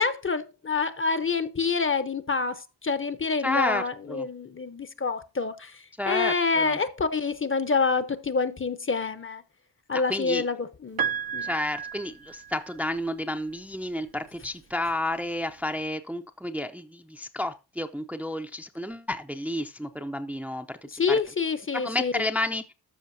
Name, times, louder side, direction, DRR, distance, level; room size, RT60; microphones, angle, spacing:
voice 1, 0.0-5.7 6.1-9.4 9.9-11.0 11.3-11.5 20.9-22.2, left 4 dB, 30° left, 0.8 m, -27 dB
voice 2, 3.4-4.3 6.0-6.8 10.1-10.4 11.4-21.2 21.7-22.7, left 1 dB, 5° right, 0.6 m, -31 dB
Piano, 11.0-13.0 14.3-14.4, right 7 dB, 65° right, 0.7 m, -32 dB
13.0 x 5.6 x 2.7 m
wide cardioid pair, 105°, 40 cm